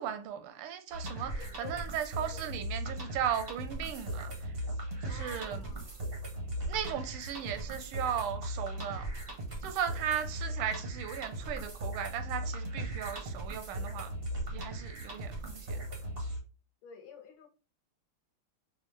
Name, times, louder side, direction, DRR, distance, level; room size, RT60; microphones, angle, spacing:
voice 1, 0.0-4.5 5.0-5.7 6.7-9.1 9.6-14.1 14.5-15.8, right 9 dB, 90° right, 1.6 m, -36 dB
sound 1, 0.9-16.4, right 1 dB, 60° right, 0.5 m, -38 dB
voice 2, 1.3-1.9 2.3-2.5 5.1-6.0 16.8-17.5, left 7 dB, 70° left, 1.5 m, -50 dB
4.8 x 2.3 x 3.2 m
omnidirectional pair, 2.4 m